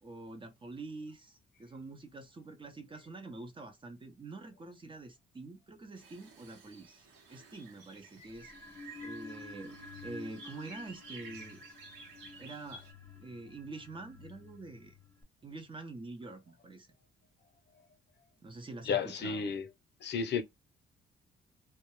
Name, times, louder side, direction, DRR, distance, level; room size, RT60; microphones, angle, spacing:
voice 1, 0.0-8.5 9.0-9.7 10.0-11.6 12.4-12.8 13.2-15.0 15.4-16.9 18.4-19.5, right 2 dB, 25° right, 0.6 m, -46 dB
sound 1, 6.0-12.9, right 3 dB, 90° right, 0.9 m, -53 dB
sound 2, 8.3-15.2, left 2 dB, 10° left, 0.8 m, -50 dB
voice 2, 18.9-19.7 20.0-20.4, left 6 dB, 60° left, 0.6 m, -32 dB
2.2 x 2.1 x 3.0 m
cardioid pair, 90°, 20 cm